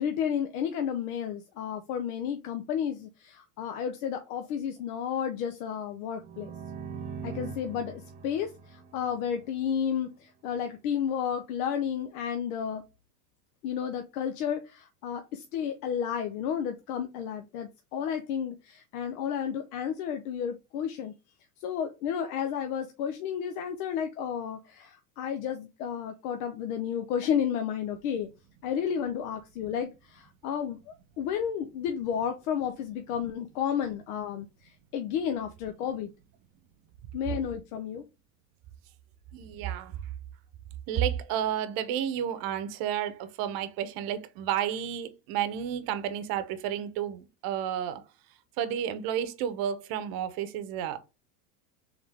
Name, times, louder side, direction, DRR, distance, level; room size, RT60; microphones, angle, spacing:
voice 1, 0.0-6.5 7.2-12.8 13.6-21.1 21.6-28.3 28.6-36.1 37.1-38.0, left 8 dB, 70° left, 0.8 m, -32 dB
sound 1, 6.2-9.9, right 6 dB, 20° right, 0.3 m, -42 dB
voice 2, 39.3-40.0 40.9-48.0 48.6-51.0, right 9 dB, 50° right, 0.8 m, -31 dB
3.6 x 3.5 x 3.5 m
supercardioid pair, 115°, 46 cm